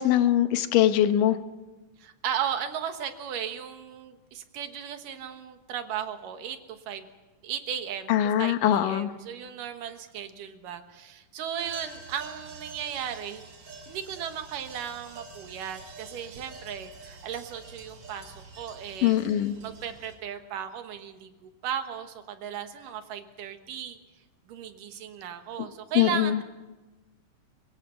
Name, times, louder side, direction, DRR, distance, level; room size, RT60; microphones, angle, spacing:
voice 1, 0.0-1.4 8.1-9.1 19.0-19.6 26.0-26.4, left 11 dB, 85° left, 10 dB, 2.7 m, -22 dB
voice 2, 2.0-7.1 7.4-13.5 13.9-19.2 19.6-24.0 24.5-26.4, right 9 dB, 85° right, 7 dB, 3.0 m, -36 dB
sound 1, 11.6-20.2, right 3 dB, 50° right, 3.7 m, -47 dB
24.5 x 21.0 x 5.8 m, 1.2 s
omnidirectional pair, 3.7 m